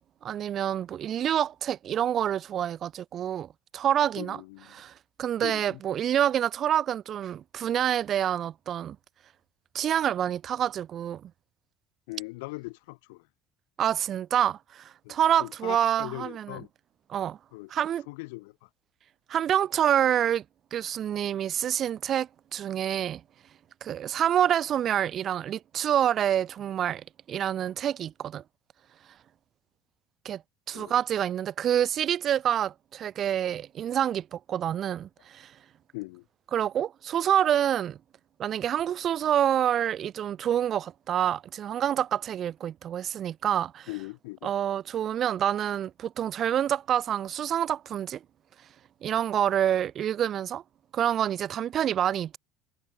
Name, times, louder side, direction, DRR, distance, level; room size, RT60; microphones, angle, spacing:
voice 1, 0.2-4.4 4.7-4.9 5.2-9.0 9.7-11.2 13.8-16.6 17.1-17.4 17.7-18.1 19.3-20.4 20.7-23.2 23.8-28.4 30.2-30.4 30.7-35.5 36.5-38.0 38.4-43.9 44.4-48.2 49.0-50.6 50.9-52.4, right 10 dB, 45° right, 0.5 m, -27 dB
voice 2, 4.2-4.8 5.4-5.8 12.1-13.2 15.0-16.7 17.5-17.7 18.1-18.7 30.7-30.9 35.9-36.2 43.9-44.5, left 25 dB, 85° left, 1.9 m, -40 dB
supercardioid pair, 105°, 0 cm